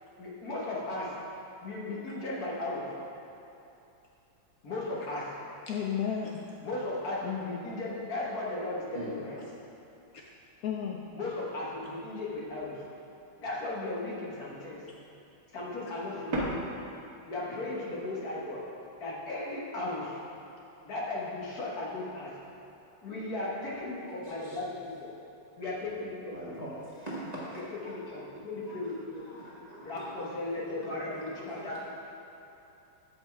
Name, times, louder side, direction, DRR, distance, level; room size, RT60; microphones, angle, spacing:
voice 1, 0.2-1.1 1.6-2.9 4.6-5.3 6.6-9.5 11.1-12.8 13.4-14.8 15.5-16.5 17.3-18.6 19.0-20.2 20.8-22.3 23.0-25.1 25.6-26.4 27.7-29.3 29.8-31.8, left 2 dB, 55° left, -5 dB, 1.7 m, -36 dB
voice 2, 5.7-6.4 7.2-7.7 9.4-9.5 10.6-11.1, left 8 dB, 80° left, 0 dB, 0.8 m, -33 dB
sound 1, 8.6-8.7 9.1-11.4 11.7-13.1 13.4-14.4 14.7-15.5 15.9-17.4 17.9-19.0, right 1 dB, 55° right, 1.6 m, -41 dB
voice 3, 26.3-28.0 28.7-30.9 31.2-31.8, right 1 dB, 25° right, -9 dB, 1.1 m, -43 dB
8.1 x 5.4 x 4.6 m, 2.8 s
omnidirectional pair, 2.1 m